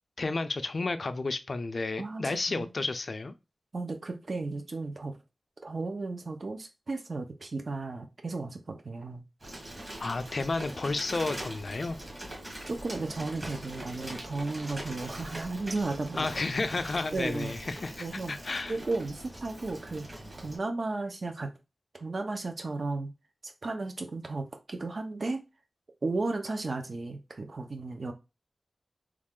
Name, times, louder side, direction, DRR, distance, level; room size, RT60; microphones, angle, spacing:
voice 1, 0.2-3.3 10.0-12.0 16.2-18.7, left 3 dB, 55° left, 0.4 m, -32 dB
voice 2, 2.0-2.9 3.7-5.2 5.6-9.2 12.7-16.5 17.1-17.5 18.0-18.3 18.7-20.1 20.4-21.5 21.9-23.1 23.4-25.4 26.0-28.1, right 3 dB, 55° right, 0.7 m, -34 dB
Bicycle, 9.4-20.6, right 1 dB, 30° right, 1.4 m, -42 dB
3.1 x 2.4 x 3.6 m
wide cardioid pair, 90°, 0 cm